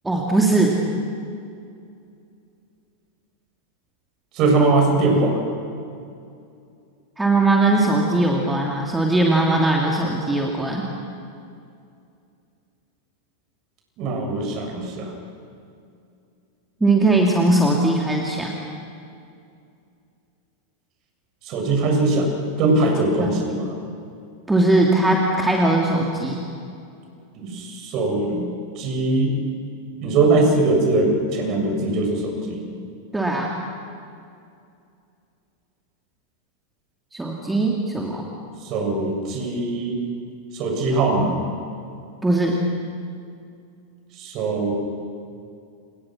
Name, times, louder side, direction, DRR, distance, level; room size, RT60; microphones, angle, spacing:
voice 1, 0.0-0.8 7.2-10.8 16.8-18.6 23.2-23.4 24.5-26.4 33.1-33.5 37.1-38.3 42.2-42.6, right 2 dB, 10° right, -1 dB, 2.9 m, -20 dB
voice 2, 4.3-5.4 14.0-15.1 21.5-22.3 22.6-23.4 27.4-28.5 28.8-29.4 30.0-32.6 38.6-40.0 40.5-41.3 44.2-44.7, right 2 dB, 40° right, 2 dB, 7.8 m, -21 dB
29.5 x 28.5 x 6.3 m, 2.5 s
figure-of-eight pair, 90°, 0 cm